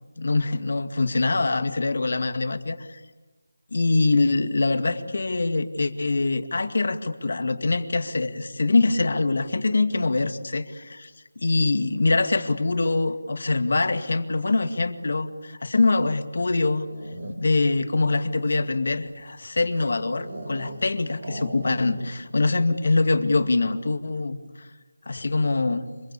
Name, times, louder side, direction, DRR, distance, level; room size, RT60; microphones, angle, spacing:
voice 1, 0.2-3.0 3.7-16.9 17.4-24.7 25.1-25.9, left 3 dB, 60° left, 8 dB, 2.2 m, -24 dB
sound 1, 16.7-17.7 18.3-20.9 21.2-22.3 22.5-22.6 22.9-23.3, right 1 dB, 45° right, 6.2 m, -39 dB
26.0 x 24.0 x 8.6 m, 1.2 s
figure-of-eight pair, 170°, 0 cm